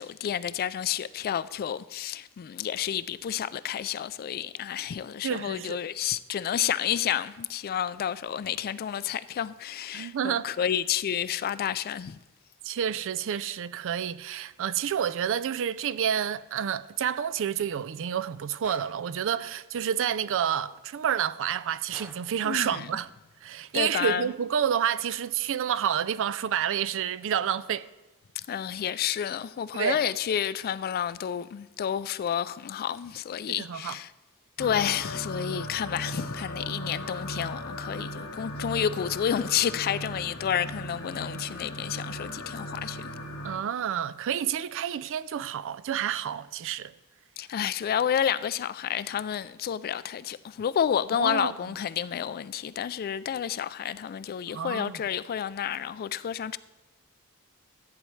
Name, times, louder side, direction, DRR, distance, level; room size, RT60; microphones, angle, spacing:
voice 1, 0.0-12.2 22.4-22.9 23.7-24.3 28.5-34.1 34.6-43.1 47.4-56.6, left 9 dB, 45° left, 0.3 m, -30 dB
voice 2, 5.2-5.8 9.9-10.5 12.6-23.1 23.4-27.9 29.7-30.0 33.5-34.0 43.4-46.9 51.2-51.5 54.5-55.0, right 9 dB, 60° right, 0.4 m, -29 dB
Gunshot gunfire, 18.6-19.1 21.9-22.4, right 1 dB, 10° right, 0.7 m, -47 dB
sound 1, 34.6-43.6, equal, 75° left, 1.2 m, -37 dB
14.0 x 8.8 x 3.2 m
head